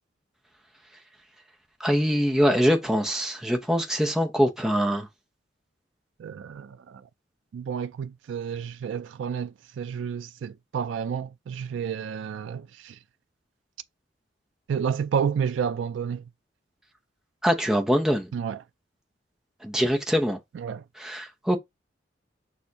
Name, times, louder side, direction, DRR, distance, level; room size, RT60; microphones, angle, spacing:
voice 1, 1.8-5.1 17.4-18.3 19.6-20.4 21.0-21.6, equal, 5° right, 0.7 m, -23 dB
voice 2, 6.2-7.0 7.5-13.0 14.7-16.2 18.3-18.6 20.5-20.8, right 7 dB, 90° right, 0.3 m, -30 dB
6.5 x 2.5 x 2.8 m
head